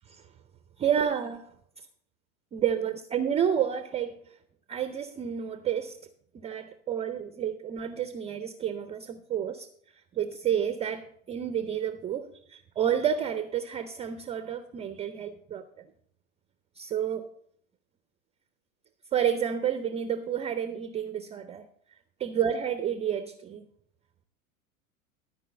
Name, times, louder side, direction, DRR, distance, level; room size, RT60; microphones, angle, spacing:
voice 1, 0.8-1.4 2.5-4.2 4.7-6.0 6.4-9.7 10.2-15.6 16.8-17.3 19.1-21.7 22.2-23.7, right 9 dB, 15° right, 10 dB, 0.4 m, -30 dB
13.0 x 4.8 x 6.6 m, 0.65 s
hypercardioid pair, 95°, 41 cm